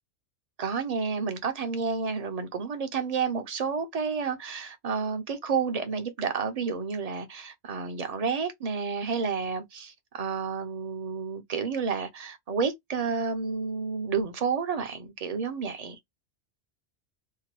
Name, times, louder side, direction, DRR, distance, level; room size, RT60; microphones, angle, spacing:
voice 1, 0.6-16.0, right 5 dB, 45° right, 0.5 m, -30 dB
2.8 x 2.2 x 2.9 m
omnidirectional pair, 1.2 m